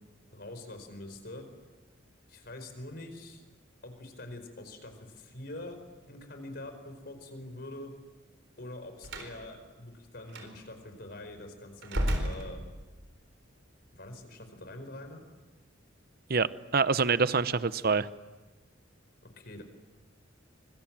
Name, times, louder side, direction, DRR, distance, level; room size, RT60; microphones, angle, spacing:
voice 1, 0.3-1.5 2.3-3.4 3.8-5.8 6.1-7.9 8.6-12.6 13.9-15.2 19.4-19.6, left 1 dB, 55° left, 7 dB, 4.7 m, -44 dB
Slam, 9.0-9.4 10.3-10.5 11.8-13.1, equal, 70° right, 4.2 m, -32 dB
voice 2, 16.7-18.1, right 4 dB, 50° right, 15 dB, 0.8 m, -25 dB
25.0 x 24.5 x 7.6 m, 1.2 s
head